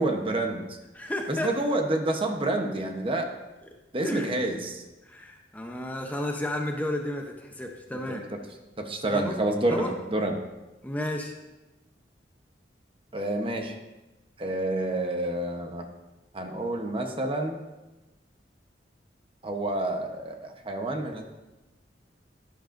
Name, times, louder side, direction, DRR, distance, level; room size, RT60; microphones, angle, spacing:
voice 1, 0.0-0.8 1.3-3.3 3.9-4.8 8.1-8.2 8.8-10.4 13.1-13.8 14.4-15.9 16.3-17.6 19.4-21.2, right 1 dB, 30° right, 4 dB, 0.9 m, -28 dB
voice 2, 0.9-1.5 4.0-4.3 5.0-8.2 9.1-9.4 9.7-9.9 10.8-11.3, left 1 dB, 10° left, 2 dB, 0.7 m, -32 dB
12.0 x 10.0 x 2.6 m, 1.1 s
head